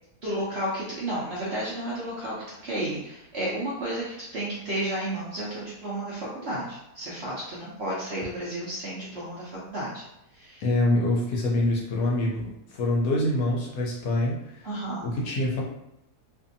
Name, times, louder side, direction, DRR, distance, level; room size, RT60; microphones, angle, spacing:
voice 1, 0.2-10.0 10.3-10.6 14.6-15.1, right 1 dB, 60° right, -7 dB, 0.7 m, -32 dB
voice 2, 10.6-14.7 15.0-15.6, left 1 dB, 70° left, -3 dB, 0.9 m, -25 dB
2.6 x 2.6 x 2.5 m, 0.84 s
omnidirectional pair, 1.7 m